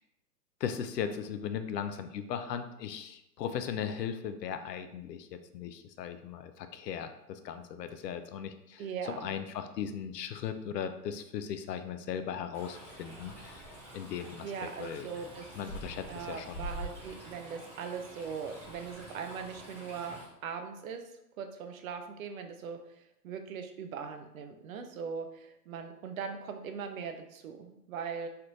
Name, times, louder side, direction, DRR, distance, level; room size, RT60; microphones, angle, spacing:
voice 1, 0.6-8.8 9.2-13.6 13.9-15.1 15.6-16.6, left 8 dB, 75° left, 9 dB, 0.5 m, -38 dB
voice 2, 8.8-9.3 14.4-15.4 16.1-21.0 21.4-28.3, right 6 dB, 55° right, 6 dB, 0.6 m, -40 dB
Stream, 12.5-20.2, right 1 dB, 5° left, 1.1 m, -46 dB
3.3 x 2.5 x 3.0 m, 0.84 s
hypercardioid pair, 125°, 49 cm